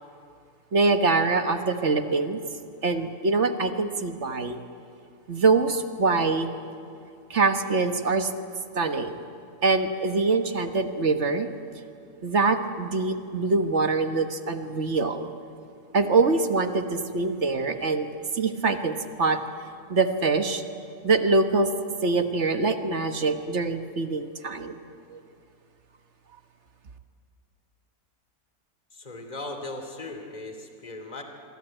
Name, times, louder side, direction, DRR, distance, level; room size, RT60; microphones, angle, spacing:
voice 1, 0.7-2.4 2.8-4.6 5.3-6.5 7.3-8.3 8.7-9.2 9.6-11.5 12.2-15.3 15.9-18.1 18.3-19.4 19.9-20.6 21.0-21.7 22.0-24.8 25.1-25.2, right 3 dB, 50° right, 8 dB, 1.5 m, -24 dB
voice 2, 28.9-31.2, left 2 dB, 25° left, 5 dB, 2.8 m, -38 dB
27.0 x 23.5 x 9.0 m, 2.5 s
omnidirectional pair, 1.7 m